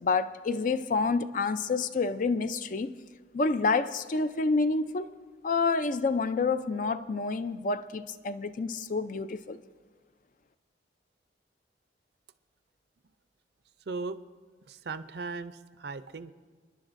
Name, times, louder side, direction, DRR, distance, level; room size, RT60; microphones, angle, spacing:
voice 1, 0.0-2.9 3.3-5.1 5.4-9.6, left 4 dB, 45° left, 12 dB, 0.4 m, -28 dB
voice 2, 13.9-14.2 14.7-16.3, right 3 dB, 60° right, 12 dB, 0.5 m, -37 dB
29.0 x 10.5 x 2.6 m, 1.5 s
head